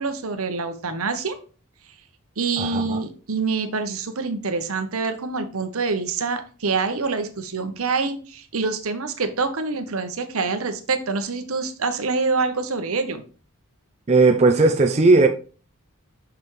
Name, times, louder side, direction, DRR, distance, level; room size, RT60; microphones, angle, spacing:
voice 1, 0.0-1.4 2.4-13.2, right 4 dB, 70° right, 0.9 m, -26 dB
voice 2, 2.6-3.0 14.1-15.3, right 3 dB, 30° right, 0.5 m, -17 dB
5.9 x 5.5 x 3.1 m
head